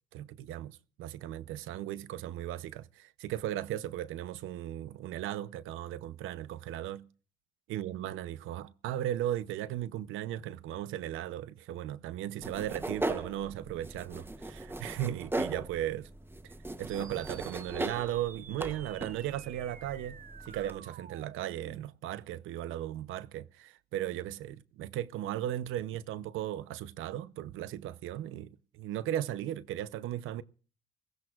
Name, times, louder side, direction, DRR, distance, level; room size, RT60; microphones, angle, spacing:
voice 1, 0.1-7.1 7.7-16.1 16.4-20.2 20.5-30.4, right 12 dB, 90° right, 0.7 m, -36 dB
sound 1, 12.4-20.8, right 2 dB, 10° right, 0.9 m, -39 dB
sound 2, 16.9-21.9, right 7 dB, 40° right, 0.8 m, -51 dB
19.0 x 17.0 x 2.4 m
cardioid pair, 90°, 20 cm